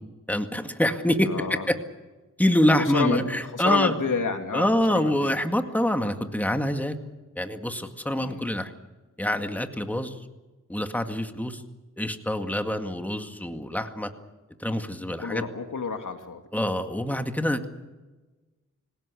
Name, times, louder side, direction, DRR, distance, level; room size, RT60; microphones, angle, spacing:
voice 1, 0.3-1.8 2.4-3.9 4.5-7.0 7.4-8.7 9.2-10.2 10.7-11.6 12.0-14.1 14.6-15.5 16.5-17.7, left 1 dB, 5° left, 6 dB, 2.0 m, -25 dB
voice 2, 1.2-1.7 2.8-5.4 8.2-8.5 15.2-16.4, left 4 dB, 80° left, 5 dB, 2.7 m, -29 dB
26.0 x 17.0 x 8.5 m, 1.2 s
wide cardioid pair, 70°, 31 cm